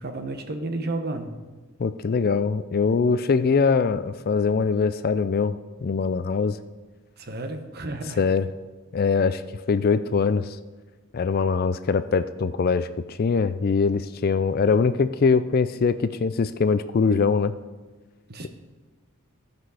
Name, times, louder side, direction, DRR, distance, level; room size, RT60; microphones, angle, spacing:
voice 1, 0.0-1.6 7.2-8.2 18.3-18.5, right 2 dB, 45° right, 6 dB, 1.0 m, -32 dB
voice 2, 1.8-5.5 5.8-6.6 8.2-8.5 8.9-9.4 9.7-10.6 11.1-17.5, left 5 dB, 45° left, 13 dB, 0.3 m, -22 dB
15.0 x 6.0 x 4.8 m, 1.3 s
head